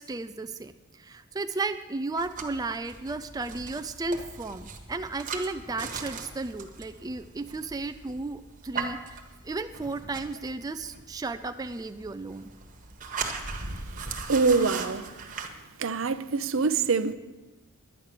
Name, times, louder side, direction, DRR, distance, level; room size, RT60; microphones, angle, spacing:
voice 1, 0.0-12.5, right 3 dB, 15° right, 0.4 m, -34 dB
Falling logs in a woodshed, 2.2-15.5, right 4 dB, 40° right, 1.3 m, -39 dB
voice 2, 14.3-15.1 15.8-17.1, right 4 dB, 65° right, 0.6 m, -24 dB
11.0 x 9.7 x 6.6 m
head